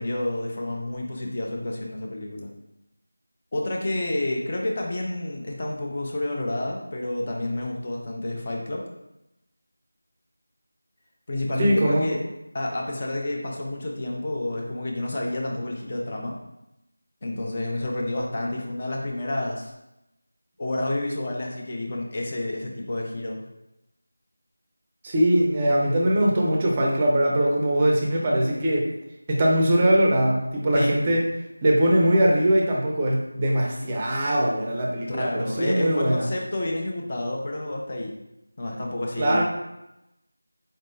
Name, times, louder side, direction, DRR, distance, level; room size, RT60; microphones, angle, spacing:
voice 1, 0.0-2.5 3.5-8.9 11.3-12.2 12.5-16.4 17.2-19.7 20.6-23.4 27.8-27.9 30.7-31.2 35.1-38.1 38.6-39.4, left 1 dB, 30° left, -1 dB, 0.6 m, -29 dB
voice 2, 11.6-12.1 25.0-28.9 29.3-31.2 31.6-36.3 39.2-39.4, right 1 dB, 20° right, -2 dB, 0.5 m, -21 dB
4.0 x 3.6 x 2.6 m, 0.90 s
figure-of-eight pair, 170°, 0 cm